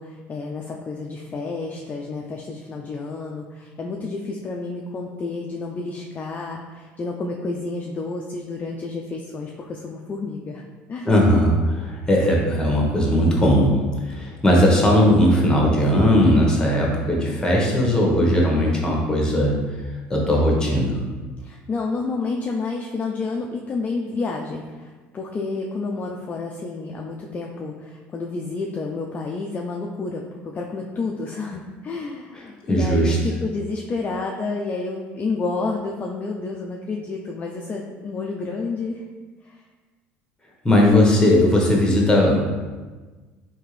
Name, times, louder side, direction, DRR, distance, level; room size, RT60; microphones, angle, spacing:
voice 1, 0.0-10.6 10.9-11.1 21.4-33.2 33.4-39.0 39.4-39.6, left 3 dB, 30° left, 0 dB, 0.4 m, -30 dB
voice 2, 11.1-19.6 20.1-21.0 32.7-33.2 40.6-42.4, left 1 dB, 15° left, -1 dB, 1.0 m, -18 dB
3.5 x 2.8 x 3.2 m, 1.3 s
supercardioid pair, 80°, 6 cm